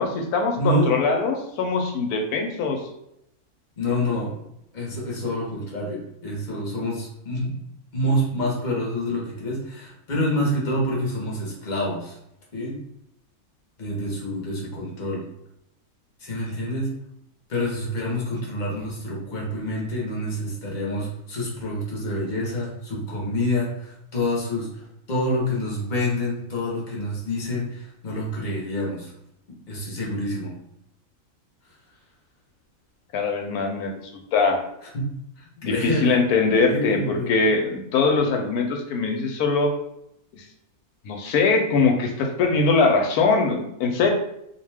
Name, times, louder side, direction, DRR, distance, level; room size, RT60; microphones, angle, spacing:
voice 1, 0.0-2.8 33.1-33.9 34.3-34.6 35.6-39.7 40.3-40.4 41.0-44.1, left 4 dB, 85° left, 3 dB, 1.1 m, -22 dB
voice 2, 0.6-0.9 3.8-4.5 4.7-7.6 7.9-12.2 12.5-12.8 13.8-15.3 16.2-16.9 17.5-29.1 29.7-30.6 34.9-35.1 35.4-36.2 36.7-37.3, left 1 dB, 40° left, -3 dB, 0.8 m, -27 dB
2.6 x 2.2 x 3.3 m, 0.79 s
omnidirectional pair, 1.6 m